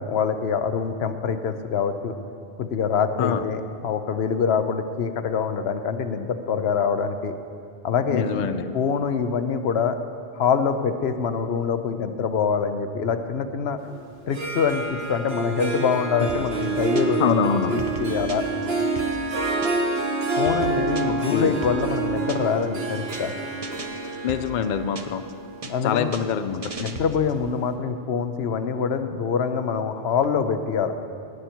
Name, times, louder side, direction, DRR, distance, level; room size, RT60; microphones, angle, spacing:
voice 1, 0.0-2.2 2.6-7.3 7.8-8.5 8.7-10.0 10.3-13.8 14.3-18.5 20.4-23.3 25.6-26.1 26.8-31.0, left 6 dB, 80° left, 9 dB, 1.0 m, -25 dB
voice 2, 8.1-8.8 16.2-16.3 17.2-17.7 21.3-21.6 24.2-25.2 25.8-26.9, left 7 dB, 55° left, 10 dB, 0.6 m, -25 dB
Harp, 14.2-27.1, right 3 dB, 75° right, 1.5 m, -28 dB
sound 1, 16.3-17.3 17.6-20.0 20.3-22.7 23.0-23.3 23.6-25.3 25.6-27.4, right 4 dB, 40° right, 0.7 m, -38 dB
18.0 x 9.2 x 4.5 m, 2.6 s
omnidirectional pair, 1.0 m